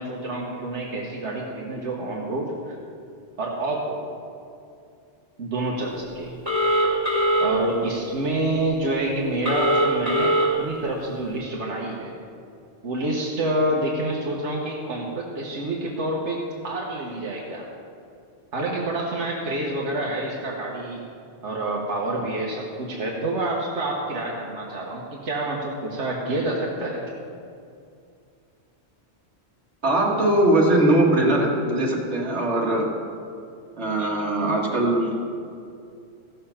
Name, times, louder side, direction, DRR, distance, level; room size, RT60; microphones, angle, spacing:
voice 1, 0.0-2.7 3.4-4.1 5.4-6.3 7.4-12.1 12.8-16.4 16.6-17.7 18.5-21.0 21.4-27.0 34.0-34.1, right 1 dB, 90° right, -3 dB, 1.5 m, -28 dB
Telephone, 6.4-7.5 9.4-10.5, equal, 55° right, 3.1 m, -21 dB
voice 2, 29.8-33.0 33.8-35.2, right 1 dB, 70° right, -2 dB, 2.0 m, -21 dB
15.0 x 6.8 x 5.7 m, 2.5 s
omnidirectional pair, 1.2 m